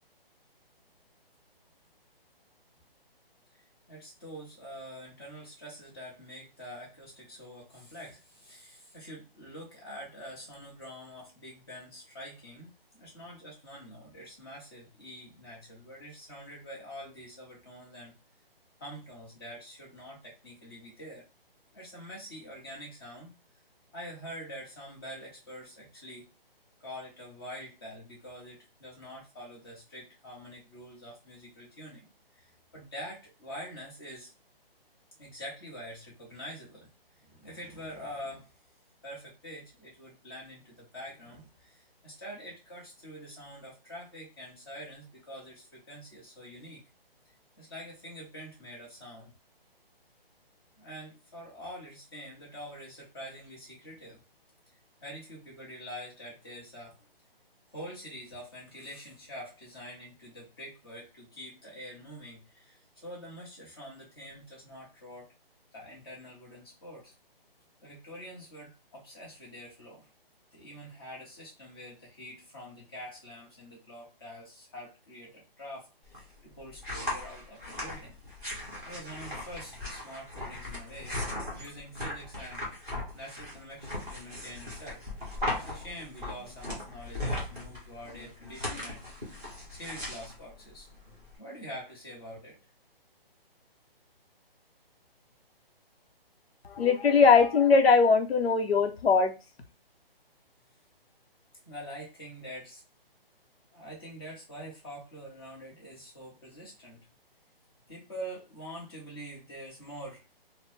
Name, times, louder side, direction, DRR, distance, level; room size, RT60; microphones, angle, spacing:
voice 1, 3.9-12.7 12.9-18.1 18.8-21.3 21.7-23.3 23.9-26.3 26.8-32.1 32.3-34.3 35.2-36.9 37.2-38.5 39.0-46.8 47.5-49.3 50.8-54.2 55.0-57.0 57.7-65.3 65.7-67.1 67.8-70.1 70.5-78.1 78.8-81.2 81.5-82.6 83.1-85.0 85.5-89.0 89.7-90.9 91.4-92.6 101.6-102.8 103.7-107.0 107.9-110.2, equal, 25° left, -3 dB, 1.0 m, -45 dB
sound 1, 76.0-91.4, left 1 dB, 5° left, 0.6 m, -38 dB
voice 2, 96.6-99.3, left 5 dB, 85° left, 6 dB, 0.7 m, -21 dB
3.2 x 2.1 x 3.1 m, 0.29 s
hypercardioid pair, 175°, 30 cm